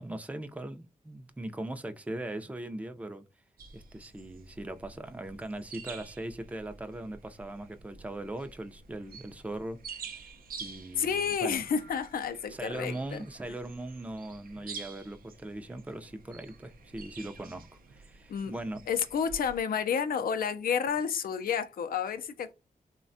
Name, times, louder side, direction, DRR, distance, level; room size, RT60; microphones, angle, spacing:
voice 1, 0.0-3.2 3.7-10.3 10.6-11.6 12.5-18.9, right 1 dB, 10° right, 0.4 m, -40 dB
sound 1, 3.6-19.6, right 5 dB, 80° right, 0.5 m, -48 dB
voice 2, 11.0-13.2 18.3-18.5 18.9-22.5, left 7 dB, 80° left, 0.4 m, -30 dB
3.3 x 2.1 x 2.5 m
cardioid pair, 70°, 15 cm